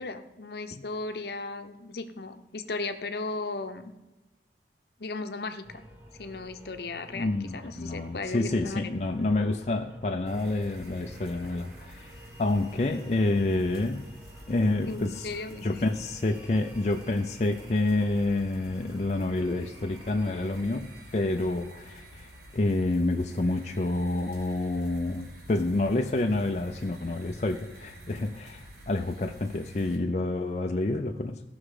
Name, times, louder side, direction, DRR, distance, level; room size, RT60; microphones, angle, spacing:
voice 1, 0.0-3.9 5.0-5.8 6.2-8.9 11.3-11.5 14.9-15.7, left 3 dB, 65° left, 8 dB, 0.8 m, -36 dB
sound 1, 5.6-20.6, equal, 10° right, 1.2 m, -50 dB
voice 2, 7.1-14.1 14.5-15.3 15.6-31.4, left 2 dB, 40° left, 3 dB, 0.5 m, -28 dB
sound 2, 10.2-30.0, equal, 65° right, 2.9 m, -49 dB
16.5 x 6.1 x 4.9 m, 1.0 s
head